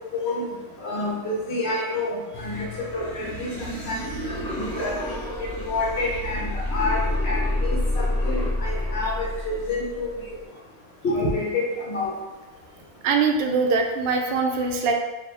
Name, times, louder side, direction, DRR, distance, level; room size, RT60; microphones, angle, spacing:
voice 1, 0.1-0.5 0.8-2.7 2.9-5.0 5.4-10.1 11.0-12.1, left 2 dB, 60° left, -3 dB, 1.1 m, -28 dB
sound 1, 2.3-10.3, left 1 dB, 25° left, 0.5 m, -28 dB
voice 2, 13.0-14.9, right 4 dB, 60° right, 3 dB, 0.6 m, -22 dB
3.0 x 2.7 x 3.7 m, 1.1 s
omnidirectional pair, 1.3 m